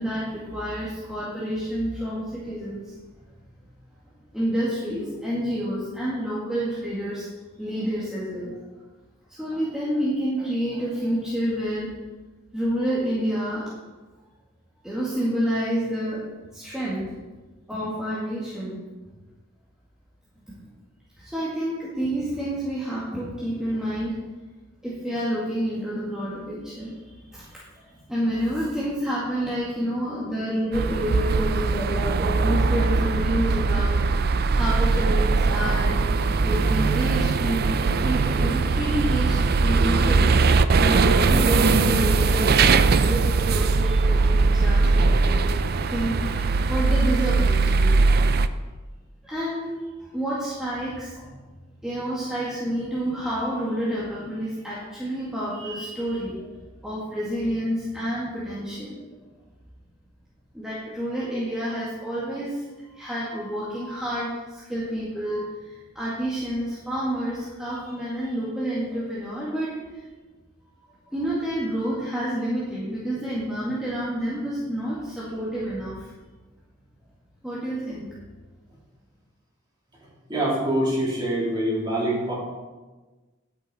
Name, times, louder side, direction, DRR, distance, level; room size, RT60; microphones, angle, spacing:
voice 1, 0.0-3.0 4.3-7.3 7.6-8.6 9.3-11.9 12.5-13.7 14.8-16.3 16.5-17.2 17.7-18.8 21.2-24.2 24.8-34.0 34.5-36.0 36.4-40.3 40.8-48.1 49.2-51.4 51.8-56.5 56.8-59.0 60.5-62.6 62.9-70.0 71.1-76.1 77.4-78.1, equal, 5° right, -9 dB, 1.9 m, -29 dB
sound 1, 30.7-48.5, right 4 dB, 50° right, 0.4 m, -20 dB
voice 2, 80.3-82.3, right 1 dB, 20° right, -6 dB, 3.6 m, -24 dB
10.0 x 8.8 x 4.3 m, 1.3 s
head